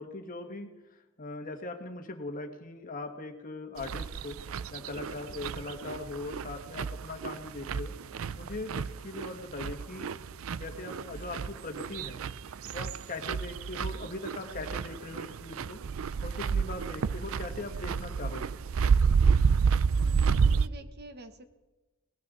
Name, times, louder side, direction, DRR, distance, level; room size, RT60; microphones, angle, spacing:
voice 1, 0.0-4.4 4.7-7.9 8.3-10.2 10.5-15.8 16.2-18.6, left 2 dB, 40° left, 5 dB, 1.7 m, -40 dB
sound 1, 3.8-20.7, right 5 dB, 70° right, 0.4 m, -30 dB
voice 2, 20.0-21.5, right 2 dB, 50° right, 8 dB, 1.2 m, -47 dB
19.0 x 18.5 x 4.0 m, 1.1 s
head